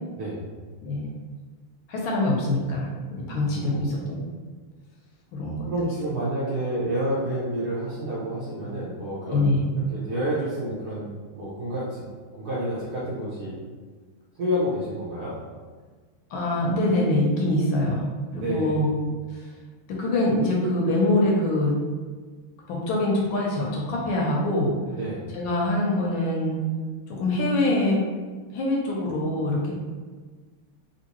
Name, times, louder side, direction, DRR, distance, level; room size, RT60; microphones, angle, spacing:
voice 1, 1.9-4.0 5.3-5.7 9.2-9.7 16.3-18.1 18.3-18.9 19.9-21.8 22.7-24.8 25.3-26.6 27.1-28.0 28.5-29.7, left 1 dB, 75° left, -2 dB, 1.3 m, -24 dB
voice 2, 3.3-4.1 5.7-9.5 9.9-11.1 11.3-12.0 12.3-13.6 14.3-15.3 18.3-18.9 24.9-25.3, right 1 dB, 70° right, -8 dB, 1.0 m, -29 dB
3.5 x 2.7 x 2.9 m, 1.5 s
omnidirectional pair, 2.4 m